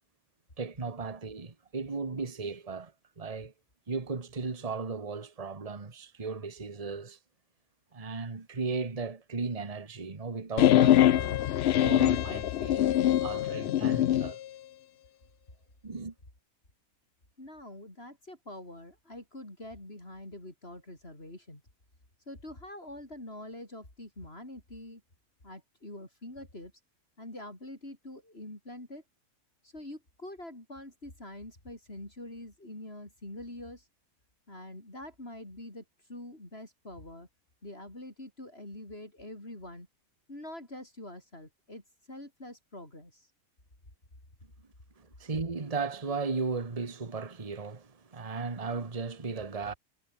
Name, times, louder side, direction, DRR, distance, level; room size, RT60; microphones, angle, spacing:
voice 1, 0.6-3.5 3.9-7.2 7.9-11.4 11.7-14.4 15.8-16.1 45.0-49.7, right 4 dB, 25° right, 1.6 m, -36 dB
sound 1, 10.6-14.3, left 12 dB, 65° left, 0.6 m, -23 dB
voice 2, 17.4-21.6 22.3-25.0 25.4-26.7 27.2-29.0 29.6-33.9 34.5-37.3 37.6-39.9 40.3-41.8 42.1-43.3, left 1 dB, 40° left, 6.7 m, -45 dB
omnidirectional pair, 1.5 m